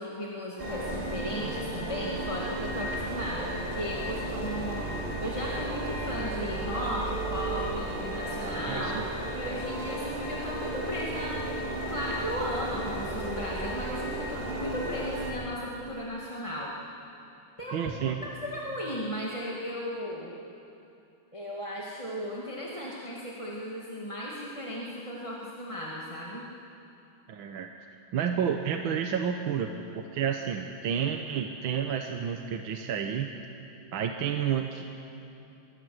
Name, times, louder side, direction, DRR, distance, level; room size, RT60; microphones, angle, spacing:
voice 1, 0.0-4.9 5.2-9.0 9.3-11.4 11.9-16.7 17.6-20.3 21.3-26.5, equal, 15° left, -5 dB, 2.3 m, -36 dB
sound 1, 0.6-15.3, right 1 dB, 25° right, 4.1 m, -34 dB
voice 2, 8.7-9.1 17.7-18.2 27.3-27.7 28.1-33.3 33.9-34.8, right 8 dB, 75° right, 4 dB, 1.8 m, -30 dB
25.0 x 22.5 x 8.0 m, 2.8 s
omnidirectional pair, 2.2 m